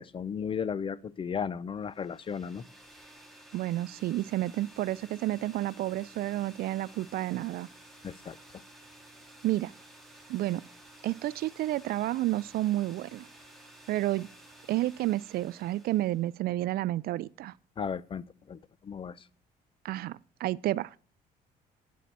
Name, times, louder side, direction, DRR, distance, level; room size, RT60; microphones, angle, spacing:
voice 1, 0.0-2.6 8.0-8.6 17.8-19.3, left 7 dB, 30° left, 0.5 m, -35 dB
sound 1, 1.9-16.3, right 1 dB, ahead, 2.4 m, -53 dB
voice 2, 3.5-7.7 9.4-9.7 10.3-10.6 11.0-13.3 13.9-14.3 14.7-17.5 19.8-20.9, right 15 dB, 65° right, 0.4 m, -30 dB
8.3 x 6.8 x 7.4 m
cardioid pair, 110°, 17 cm